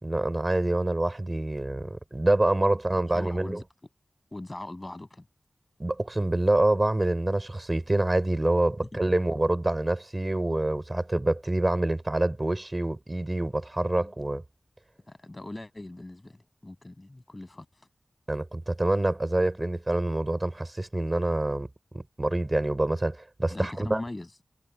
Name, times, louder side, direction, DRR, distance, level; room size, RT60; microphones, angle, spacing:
voice 1, 0.0-3.6 5.8-14.4 18.3-21.7 21.9-24.0, right 2 dB, 30° right, 4.7 m, -26 dB
voice 2, 2.9-3.6 4.3-5.3 14.0-14.1 15.1-17.8 23.5-24.3, left 2 dB, 30° left, 7.5 m, -40 dB
wide cardioid pair, 55°, 0 cm